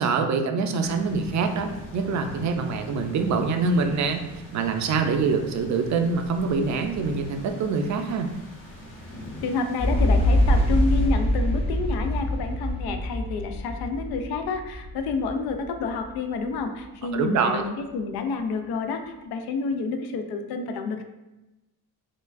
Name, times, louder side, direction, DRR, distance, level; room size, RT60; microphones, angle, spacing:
voice 1, 0.0-4.2 4.5-8.3 17.1-17.6, right 4 dB, 50° right, 5 dB, 0.4 m, -25 dB
sound 1, 0.8-11.1, left 1 dB, 35° left, 1.0 m, -42 dB
voice 2, 9.4-21.0, left 4 dB, 80° left, 6 dB, 0.5 m, -29 dB
sound 2, 9.8-15.8 16.1-16.2, left 1 dB, 15° left, 0.4 m, -24 dB
4.5 x 2.2 x 2.5 m, 1.0 s
cardioid pair, 115°, 38 cm